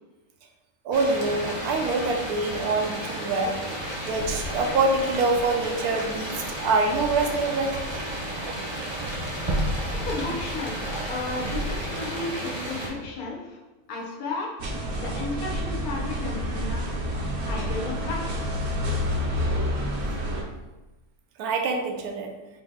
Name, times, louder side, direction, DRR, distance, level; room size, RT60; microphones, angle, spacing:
voice 1, 0.8-3.6 4.1-7.8 21.4-22.3, right 3 dB, 90° right, 3 dB, 1.1 m, -25 dB
sound 1, 0.9-12.9, right 1 dB, 25° right, 0.7 m, -32 dB
voice 2, 10.0-13.6 13.9-14.5 15.0-16.8 17.4-18.6, left 3 dB, 80° left, -2 dB, 1.3 m, -34 dB
sound 2, 14.6-20.4, equal, 60° right, 0.8 m, -28 dB
4.2 x 2.6 x 3.8 m, 1.1 s
omnidirectional pair, 1.5 m